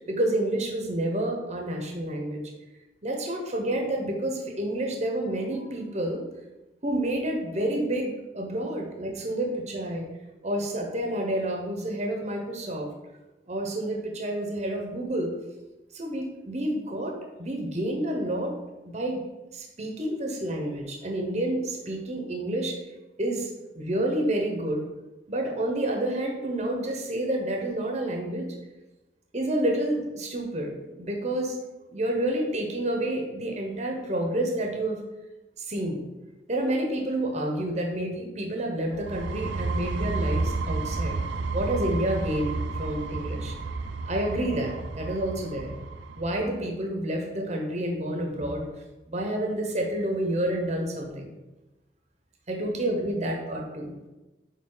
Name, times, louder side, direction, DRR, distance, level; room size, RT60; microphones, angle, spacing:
voice 1, 0.1-2.4 3.0-6.2 6.8-10.0 10.4-12.9 13.5-15.3 15.9-18.5 18.8-19.2 19.5-22.8 23.2-24.8 25.3-28.5 29.3-31.6 31.9-35.0 35.6-36.0 36.5-41.2 41.5-43.6 44.1-45.7 46.2-48.6 49.1-51.3 52.5-53.9, right 1 dB, 35° right, 1 dB, 0.9 m, -29 dB
sound 1, 38.9-46.6, right 3 dB, 70° right, 0.5 m, -31 dB
8.8 x 3.5 x 3.8 m, 1.1 s
head